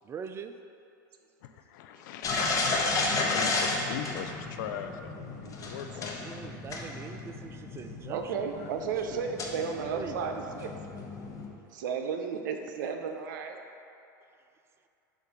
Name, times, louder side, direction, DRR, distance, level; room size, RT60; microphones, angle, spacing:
voice 1, 0.0-0.5 6.1-9.3 9.8-10.2, right 6 dB, 25° right, 8 dB, 0.3 m, -43 dB
voice 2, 1.4-6.5 8.6-8.7, left 8 dB, 70° left, 7 dB, 0.5 m, -41 dB
sound 1, 2.2-11.5, left 3 dB, 30° left, 0.9 m, -33 dB
voice 3, 8.1-10.7 11.7-13.6, right 6 dB, 75° right, 5 dB, 0.6 m, -33 dB
7.0 x 2.5 x 5.3 m, 2.6 s
hypercardioid pair, 105°, 11 cm